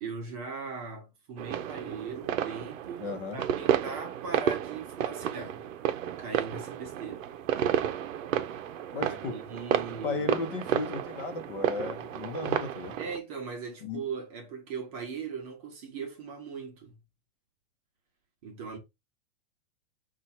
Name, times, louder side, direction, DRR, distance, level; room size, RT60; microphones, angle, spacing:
voice 1, 0.0-5.6 6.2-7.3 9.0-10.2 13.0-17.0 18.4-18.8, right 5 dB, 25° right, 0.8 m, -39 dB
sound 1, 1.4-13.2, right 10 dB, 70° right, 0.7 m, -32 dB
voice 2, 3.0-3.4 8.9-9.4 10.0-13.0 13.8-14.0, left 4 dB, 40° left, 0.9 m, -35 dB
4.3 x 2.4 x 4.2 m
supercardioid pair, 175°, 41 cm